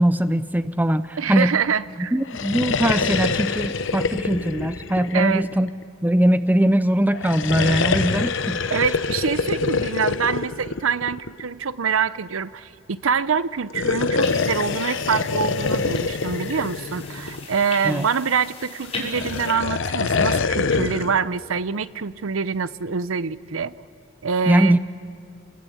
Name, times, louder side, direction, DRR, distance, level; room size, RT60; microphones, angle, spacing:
voice 1, 0.0-1.6 2.0-5.7 6.0-8.8 17.8-18.1 24.5-24.8, right 1 dB, 10° right, 12 dB, 0.6 m, -21 dB
voice 2, 1.2-2.1 5.1-5.4 8.7-23.7 24.2-24.8, right 6 dB, 75° right, 16 dB, 0.7 m, -25 dB
sound 1, 2.2-5.8 7.1-11.5 13.6-17.6 18.9-21.2, left 4 dB, 60° left, 0.8 m, -25 dB
sound 2, 14.2-19.5, left 4 dB, 30° left, 5.3 m, -38 dB
28.0 x 21.0 x 8.7 m, 2.2 s
head